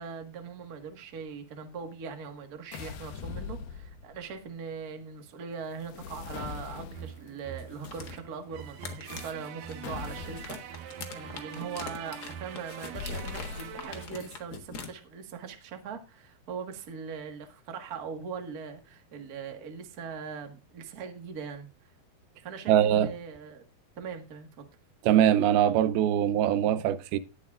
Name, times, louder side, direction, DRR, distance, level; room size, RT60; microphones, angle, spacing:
voice 1, 0.0-21.9 22.4-23.6 24.0-24.7, right 6 dB, 45° right, 1.2 m, -41 dB
sound 1, 2.7-4.3 5.8-7.3 9.8-10.7 13.0-14.1, left 6 dB, 90° left, 3.1 m, -40 dB
sound 2, 6.9-14.1, right 8 dB, 75° right, 2.4 m, -44 dB
sound 3, 7.6-14.9, left 5 dB, 55° left, 1.0 m, -44 dB
voice 2, 22.7-23.1 25.0-27.2, right 10 dB, 90° right, 2.6 m, -22 dB
19.5 x 7.3 x 2.5 m
omnidirectional pair, 4.3 m